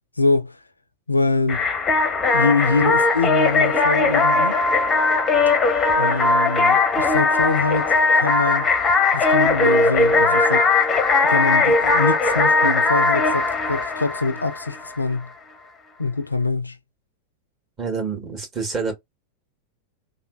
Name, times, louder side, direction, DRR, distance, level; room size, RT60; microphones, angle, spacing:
voice 1, 0.2-0.6 1.1-1.6 2.3-4.6 5.9-8.7 9.1-10.7 11.2-15.3 16.0-16.8, left 3 dB, 80° left, 0.4 m, -24 dB
sound 1, 1.5-14.9, left 3 dB, 20° left, 0.7 m, -19 dB
voice 2, 17.8-18.9, right 4 dB, 30° right, 1.7 m, -27 dB
3.3 x 2.4 x 2.3 m
figure-of-eight pair, 90°, 0 cm